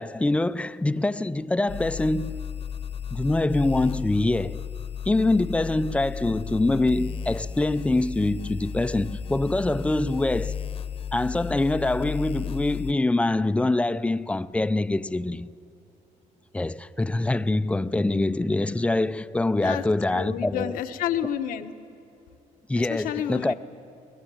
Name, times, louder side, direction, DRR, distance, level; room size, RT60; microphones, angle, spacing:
voice 1, 0.0-2.4 3.1-4.6 5.1-10.6 11.1-15.5 16.5-20.7 22.7-23.5, left 2 dB, 10° left, 0.4 m, -24 dB
sound 1, 1.7-12.9, left 7 dB, 45° left, 1.0 m, -34 dB
voice 2, 20.1-21.7 22.8-23.5, left 10 dB, 90° left, 1.2 m, -30 dB
23.0 x 20.0 x 9.0 m
cardioid pair, 130°, 14 cm